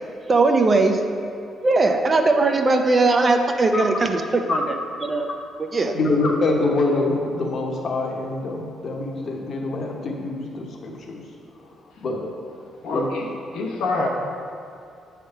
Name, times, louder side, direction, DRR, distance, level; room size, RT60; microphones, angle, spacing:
voice 1, 0.3-1.0 1.6-4.2 4.5-4.7 5.0-5.3 5.6-5.9, right 3 dB, 30° right, 5 dB, 0.5 m, -19 dB
voice 2, 5.9-11.2 11.6-11.7 12.0-12.3 12.9-13.1, left 2 dB, 50° left, 0 dB, 1.0 m, -25 dB
voice 3, 12.8-14.1, left 2 dB, 90° left, -1 dB, 1.0 m, -26 dB
7.6 x 3.6 x 5.6 m, 2.5 s
cardioid pair, 125°, 0 cm